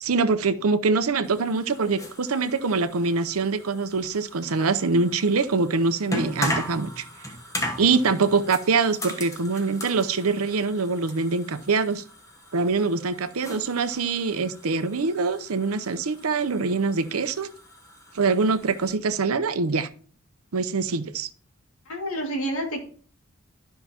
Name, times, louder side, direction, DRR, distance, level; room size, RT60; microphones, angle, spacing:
voice 1, 0.0-7.0 7.8-12.0 12.5-17.5 18.1-19.9 20.5-21.3, right 4 dB, 80° right, 11 dB, 0.7 m, -24 dB
sound 1, 1.2-19.0, left 1 dB, 15° left, 1.0 m, -38 dB
voice 2, 21.9-22.9, right 1 dB, 70° left, 1 dB, 2.2 m, -29 dB
12.5 x 5.6 x 2.9 m, 0.42 s
head